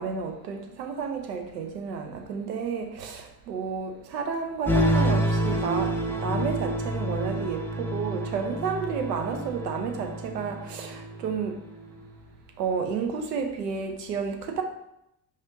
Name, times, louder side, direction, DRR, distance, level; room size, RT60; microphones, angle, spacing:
voice 1, 0.0-11.6 12.6-14.6, right 6 dB, 75° right, 4 dB, 0.6 m, -31 dB
sound 1, 4.6-11.5, right 1 dB, 5° left, 0.4 m, -28 dB
5.0 x 3.2 x 2.6 m, 0.81 s
figure-of-eight pair, 55°, 48 cm